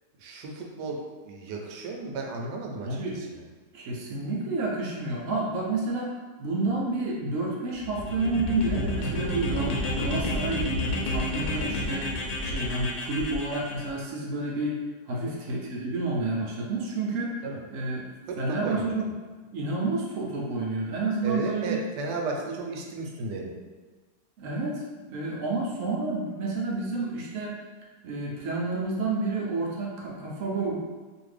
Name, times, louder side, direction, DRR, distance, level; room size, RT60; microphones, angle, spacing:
voice 1, 0.2-1.0 1.2-3.4 15.1-15.4 17.4-17.6 18.3-18.9 21.2-23.6, right 3 dB, 80° right, 0 dB, 1.2 m, -34 dB
voice 2, 2.8-3.2 3.7-12.1 12.4-14.7 15.1-17.4 17.7-18.0 18.4-19.1 19.5-21.8 24.4-27.6 28.0-30.8, right 2 dB, 65° right, -3 dB, 0.8 m, -30 dB
sound 1, 7.8-13.9, left 1 dB, 75° left, 1.1 m, -30 dB
2.8 x 2.5 x 3.2 m, 1.4 s
omnidirectional pair, 1.8 m